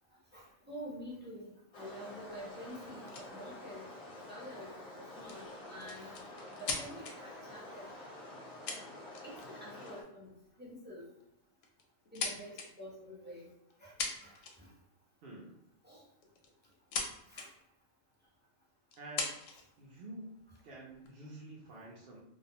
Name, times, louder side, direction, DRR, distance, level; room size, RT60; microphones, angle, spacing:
voice 1, 0.3-3.9 4.3-6.1 6.6-7.9 9.2-10.3 10.6-11.1 12.1-13.5 13.8-14.0 14.2-14.7 15.8-16.0 17.3-17.5, equal, 15° right, -6 dB, 0.3 m, -48 dB
sound 1, 1.7-10.0, left 1 dB, 45° left, 0.6 m, -49 dB
sound 2, 3.1-3.3 5.2-7.1 8.2-8.3 8.7-9.5 9.8-10.1 11.0-11.2 11.6-12.7 13.7-13.8 14.0-14.7 16.2-17.1 17.3-17.5 18.1-18.2 18.9-19.6 20.4-21.1, left 4 dB, 85° left, 1.0 m, -39 dB
voice 2, 15.2-15.6 19.0-19.4 19.8-20.3 20.6-22.2, right 1 dB, 60° right, -4 dB, 0.6 m, -48 dB
2.5 x 2.1 x 2.7 m, 0.83 s
omnidirectional pair, 1.3 m